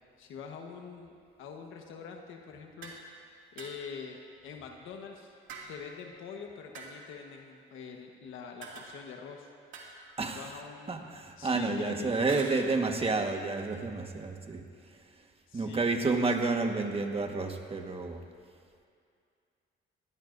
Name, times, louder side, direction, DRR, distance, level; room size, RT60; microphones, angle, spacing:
voice 1, 0.2-2.9 3.5-4.2 4.4-5.3 5.7-9.5 10.2-11.0 11.4-12.1 15.5-16.0, left 6 dB, 85° left, 2 dB, 1.3 m, -44 dB
sound 1, 2.8-3.1 3.6-4.0 5.5-6.1 6.7-7.2 8.6-9.3 9.7-10.5 12.3-12.6, right 4 dB, 80° right, 2.4 m, -46 dB
voice 2, 10.2-10.5 10.9-14.6 15.5-18.2, right 3 dB, 30° right, 3 dB, 1.5 m, -30 dB
22.0 x 16.5 x 2.6 m, 2.3 s
cardioid pair, 90°, 20 cm